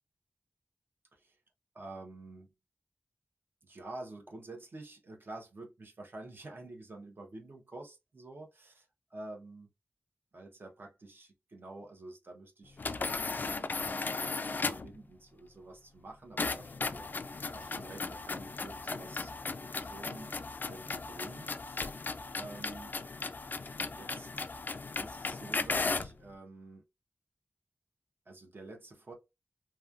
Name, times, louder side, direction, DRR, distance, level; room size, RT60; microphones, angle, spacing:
voice 1, 1.7-2.5 3.6-9.7 10.3-19.3 19.7-22.0 22.3-22.9 23.9-24.5 25.0-26.8 28.3-29.1, right 2 dB, 60° right, 0.9 m, -49 dB
sound 1, 12.8-15.0 16.4-26.2, left 3 dB, 50° left, 0.3 m, -36 dB
3.1 x 2.2 x 2.4 m
wide cardioid pair, 95°, 4 cm